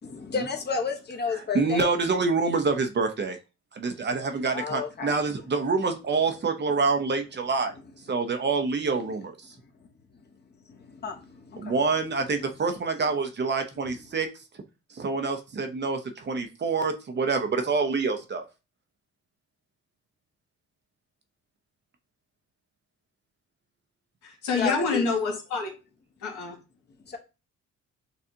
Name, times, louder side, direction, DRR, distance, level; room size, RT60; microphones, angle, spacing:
voice 1, 0.0-1.9 4.5-5.1 9.6-9.9 10.1-11.8 24.6-25.0 27.0-27.2, left 5 dB, 35° left, 2 dB, 1.1 m, -32 dB
voice 2, 1.5-3.4 3.7-7.7 8.1-9.5 11.6-14.3 14.9-18.4, right 4 dB, 35° right, 6 dB, 0.7 m, -26 dB
voice 3, 24.2-25.7 26.2-26.6, left 4 dB, 85° left, 0 dB, 1.6 m, -27 dB
6.7 x 2.4 x 2.8 m, 0.30 s
cardioid pair, 90°, 30 cm